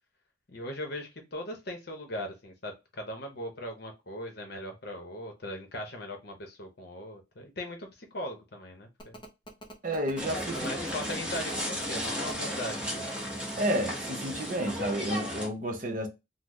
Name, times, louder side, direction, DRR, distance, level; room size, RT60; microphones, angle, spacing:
voice 1, 0.5-9.2 10.5-13.2, left 1 dB, 55° left, 0.8 m, -39 dB
Telephone, 9.0-14.7, right 2 dB, 25° left, 0.5 m, -48 dB
voice 2, 9.8-10.7 13.6-16.1, right 1 dB, 40° right, 0.7 m, -31 dB
sound 1, 10.2-15.5, equal, 5° right, 0.9 m, -34 dB
3.8 x 2.0 x 3.0 m
head